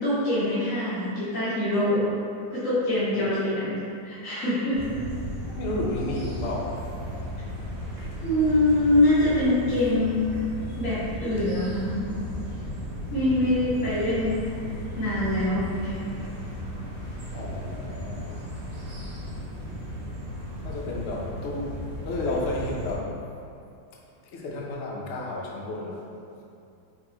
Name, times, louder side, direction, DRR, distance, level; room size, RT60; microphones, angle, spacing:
voice 1, 0.0-2.1 2.5-3.8 4.0-4.8 8.2-10.1 10.8-12.1 13.1-14.4 15.0-16.1, left 1 dB, 50° left, -13 dB, 1.5 m, -24 dB
sound 1, 4.7-23.0, equal, 55° right, 0.6 m, -35 dB
voice 2, 5.6-6.9 13.2-13.9 17.3-18.3 20.6-21.7 22.1-23.1 24.3-26.0, left 2 dB, 85° left, -3 dB, 0.6 m, -32 dB
5.2 x 2.9 x 2.9 m, 2.6 s
omnidirectional pair, 2.0 m